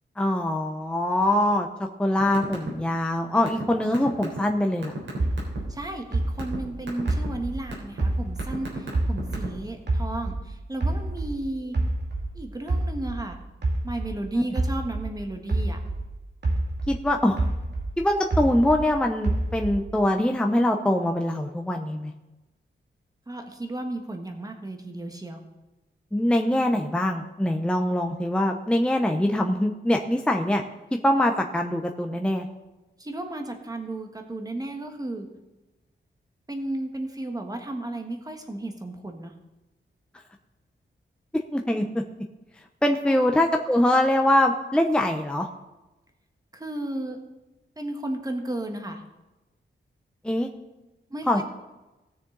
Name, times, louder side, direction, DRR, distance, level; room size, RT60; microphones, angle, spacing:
voice 1, 0.2-4.9 14.3-14.4 16.9-17.4 18.0-22.1 26.1-30.6 30.9-32.5 41.5-41.8 42.8-45.5 50.2-50.5 51.3-51.4, left 1 dB, 5° left, 3 dB, 0.7 m, -23 dB
sound 1, 2.2-2.7 3.0-5.6 6.1-6.6 6.9-7.3 7.7-8.0 8.4-9.7, right 2 dB, 85° right, 3.7 m, -33 dB
sound 2, 5.2-8.6 8.9-11.4 11.7-16.1 16.4-18.9 19.2-20.0, right 2 dB, 60° right, 2.3 m, -27 dB
voice 2, 5.7-11.8 12.3-13.4 13.8-15.8 23.3-25.4 33.0-35.3 36.5-39.3 43.0-43.2 46.5-47.2 47.8-49.0 51.1-51.4, right 1 dB, 20° right, 4 dB, 1.5 m, -34 dB
18.0 x 6.7 x 3.9 m, 1.0 s
wide cardioid pair, 130°, 20 cm